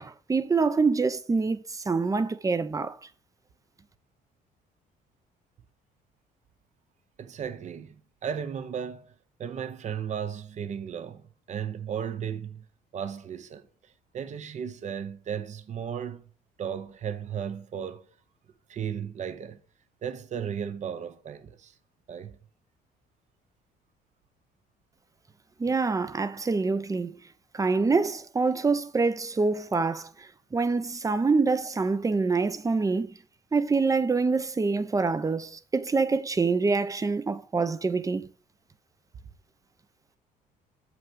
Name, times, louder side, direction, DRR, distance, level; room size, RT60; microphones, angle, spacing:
voice 1, 0.0-3.0 25.6-27.2 27.5-30.1 30.5-33.1 33.5-38.3, right 4 dB, 20° right, 0.8 m, -26 dB
voice 2, 7.2-9.1 9.4-12.6 12.9-13.7 14.1-16.2 16.6-18.0 18.7-19.6 20.0-21.7 22.1-22.4, right 8 dB, 45° right, 1.0 m, -35 dB
7.5 x 6.1 x 5.5 m
cardioid pair, 110°, 17 cm